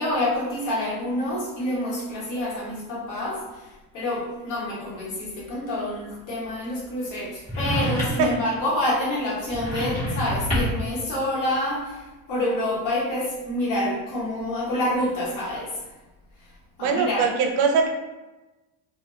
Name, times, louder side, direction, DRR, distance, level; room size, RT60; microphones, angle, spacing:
voice 1, 0.0-15.9 16.4-16.5 16.8-17.3, left 1 dB, 50° left, -6 dB, 1.0 m, -27 dB
sound 1, 7.5-8.4 9.5-10.9, equal, 20° left, 1.2 m, -27 dB
voice 2, 16.8-17.9, right 5 dB, 80° right, 3 dB, 0.6 m, -22 dB
2.2 x 2.2 x 2.9 m, 1.1 s
cardioid pair, 150°, 40 cm